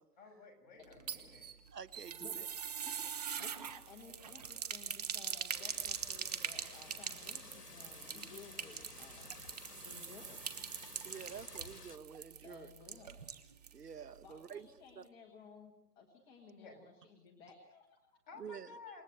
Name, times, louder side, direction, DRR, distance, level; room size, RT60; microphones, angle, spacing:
voice 1, 0.2-1.5 16.5-16.8 18.3-19.0, left 4 dB, 30° left, 0 dB, 6.8 m, -54 dB
sound 1, 0.8-13.8 14.1-14.2 14.5-14.6, right 7 dB, 25° right, 1.2 m, -43 dB
voice 2, 1.7-2.5 11.0-12.7 13.7-14.7 14.9-15.0 18.4-18.7, right 7 dB, 75° right, 14 dB, 1.5 m, -48 dB
voice 3, 2.9-9.4 9.8-10.7 12.4-13.2 14.2-18.2, left 4 dB, 10° left, 1 dB, 1.6 m, -57 dB
sound 2, 5.5-12.0, left 6 dB, 75° left, 1.9 m, -55 dB
28.5 x 21.0 x 8.0 m, 0.85 s
hypercardioid pair, 165°, 47 cm